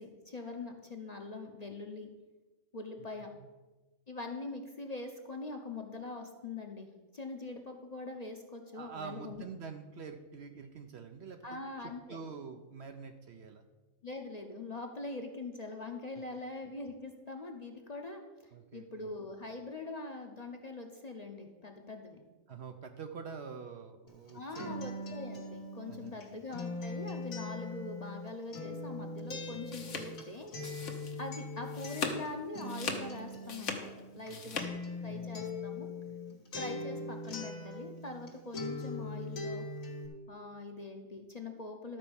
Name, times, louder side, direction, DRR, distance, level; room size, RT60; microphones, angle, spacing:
voice 1, 0.0-2.1 2.7-3.3 4.1-6.9 7.1-9.4 11.4-12.2 14.0-22.2 24.3-30.5 31.2-34.6 35.0-35.9 36.6-39.6 40.3-42.0, left 3 dB, 35° left, 3 dB, 0.9 m, -43 dB
voice 2, 8.7-13.6 18.5-19.0 22.5-24.9 25.9-26.2 34.3-34.6 35.0-35.7, right 5 dB, 60° right, 6 dB, 0.9 m, -46 dB
Acoustic guitar, 24.1-38.3 38.5-40.1, left 2 dB, 85° left, 2.0 m, -41 dB
sound 1, 29.4-31.3 31.6-32.3 32.6-34.7, left 5 dB, 65° left, 1.4 m, -39 dB
12.0 x 4.5 x 7.0 m, 1.2 s
omnidirectional pair, 1.4 m